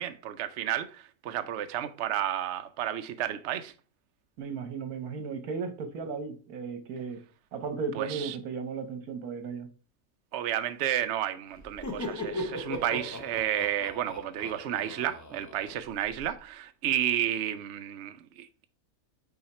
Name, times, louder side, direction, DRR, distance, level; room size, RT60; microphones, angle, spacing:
voice 1, 0.0-3.7 7.9-8.3 10.3-18.6, right 11 dB, 60° right, 0.7 m, -32 dB
voice 2, 4.4-7.2 7.5-9.7, right 5 dB, 80° right, 1.5 m, -35 dB
Laughter, 11.6-16.3, left 1 dB, 20° left, 0.5 m, -38 dB
5.6 x 4.3 x 4.3 m
omnidirectional pair, 1.6 m